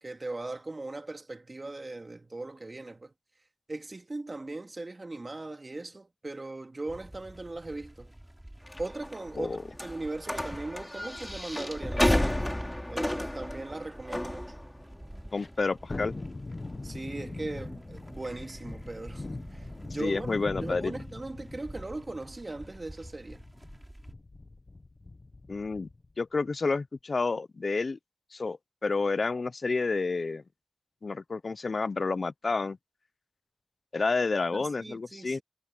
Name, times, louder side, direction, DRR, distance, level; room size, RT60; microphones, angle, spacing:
voice 1, 0.0-3.1 3.7-8.1 8.8-12.5 12.9-14.6 16.8-19.3 19.5-23.4 34.5-35.4, right 2 dB, 40° right, 2.8 m, -39 dB
sound 1, 6.9-24.1, right 1 dB, 15° right, 6.4 m, -48 dB
sound 2, 8.7-20.6, left 1 dB, 15° left, 2.6 m, -34 dB
voice 2, 15.3-16.1 20.0-20.9 25.5-25.9 26.2-28.0 28.3-30.4 31.0-32.8 33.9-35.4, left 4 dB, 65° left, 0.6 m, -30 dB
Thunderstorm, 15.9-26.1 26.4-26.5, left 2 dB, 45° left, 1.1 m, -42 dB
wide cardioid pair, 60°, 0 cm